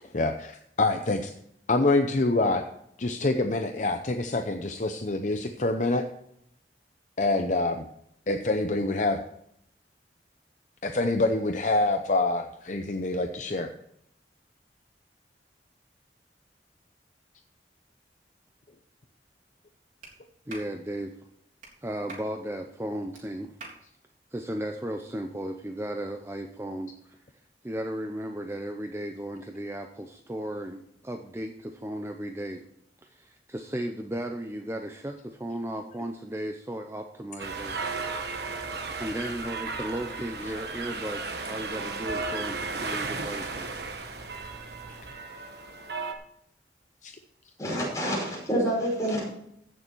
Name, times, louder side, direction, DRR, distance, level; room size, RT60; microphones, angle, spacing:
voice 1, 0.1-1.3 1.7-2.6 3.0-6.1 7.2-7.9 8.3-9.2 10.8-13.7 47.0-47.1, left 2 dB, 45° left, 6 dB, 0.7 m, -26 dB
Clapping, 20.0-20.1 20.5-20.7 21.6-21.7 22.1-22.3 23.1-23.2 23.6-23.8, right 3 dB, 50° right, 3.6 m, -43 dB
voice 2, 20.5-21.1 21.8-23.5 24.3-27.2 27.6-32.6 33.1-37.9 39.0-43.8, right 1 dB, 15° right, 4 dB, 0.6 m, -35 dB
sound 1, 37.4-46.1, right 4 dB, 65° right, 1.4 m, -35 dB
voice 3, 47.6-49.2, equal, 20° left, -4 dB, 5.4 m, -27 dB
15.5 x 6.7 x 4.6 m, 0.73 s
head